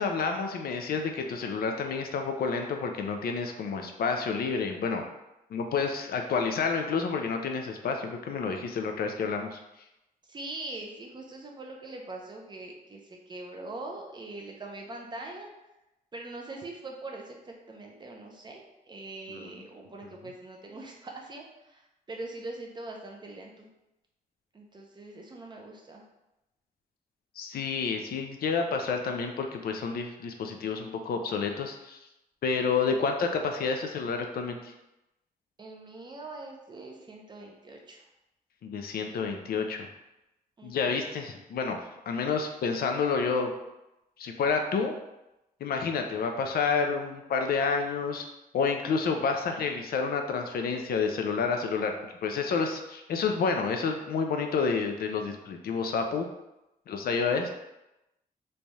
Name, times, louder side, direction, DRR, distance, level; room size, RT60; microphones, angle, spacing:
voice 1, 0.0-5.1 5.5-9.6 19.3-19.6 27.4-32.0 32.4-34.7 38.6-39.9 40.6-41.8 42.1-43.5 44.2-45.0 45.6-48.2 48.5-51.9 52.2-56.3 56.9-57.5, left 5 dB, 75° left, 4 dB, 0.5 m, -29 dB
voice 2, 10.3-13.0 13.3-15.5 16.1-21.8 22.1-23.7 24.5-26.0 35.6-38.0 40.6-40.9, right 2 dB, 30° right, 0 dB, 0.6 m, -42 dB
3.2 x 2.3 x 4.0 m, 0.93 s
wide cardioid pair, 145°, 16 cm